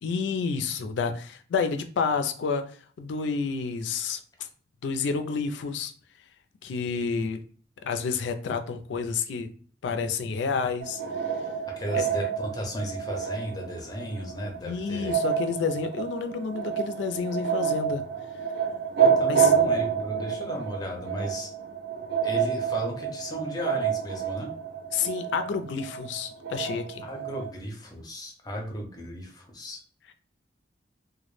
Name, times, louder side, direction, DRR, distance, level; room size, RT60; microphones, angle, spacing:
voice 1, 0.0-2.6 3.0-4.2 4.8-5.9 6.6-7.4 7.8-9.5 9.8-11.0 11.9-12.1 14.6-18.0 19.3-19.5 24.9-27.0, left 5 dB, 75° left, 7 dB, 0.3 m, -29 dB
sound 1, 10.8-27.5, right 7 dB, 60° right, 0.3 m, -28 dB
voice 2, 11.8-15.2 19.0-21.5 22.2-24.5 27.0-29.8, equal, 20° left, 1 dB, 0.5 m, -35 dB
2.1 x 2.0 x 3.0 m, 0.43 s
head